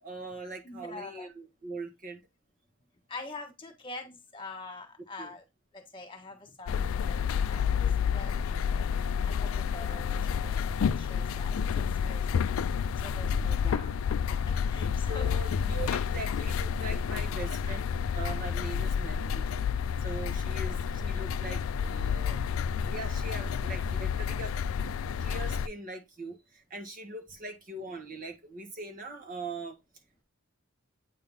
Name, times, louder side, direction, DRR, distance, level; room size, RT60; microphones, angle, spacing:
voice 1, 0.0-2.2 5.2-5.4 13.4-13.9 15.1-19.5 20.0-22.4 22.9-24.5 25.2-29.8, right 2 dB, 40° right, 1.3 m, -41 dB
voice 2, 0.6-1.3 3.1-5.4 5.7-7.2 7.5-8.9 9.2-11.5 12.0-12.5 13.0-14.0 14.3-15.3, left 3 dB, 25° left, 1.6 m, -45 dB
sound 1, 6.7-25.7, left 7 dB, 80° left, 0.3 m, -30 dB
8.6 x 3.8 x 3.6 m
head